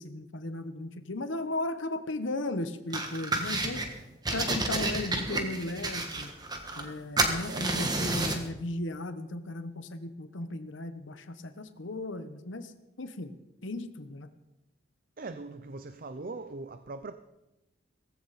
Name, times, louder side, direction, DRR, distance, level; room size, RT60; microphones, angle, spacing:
voice 1, 0.0-3.8 4.3-6.3 6.8-12.7 13.0-13.3 13.6-14.3, left 2 dB, 70° left, 1.1 m, -36 dB
sound 1, 2.9-3.9 4.3-6.9 7.2-8.5, right 2 dB, 20° right, 1.5 m, -30 dB
voice 2, 7.2-7.7 15.2-17.1, right 3 dB, 45° right, 0.6 m, -41 dB
17.5 x 15.5 x 4.2 m
head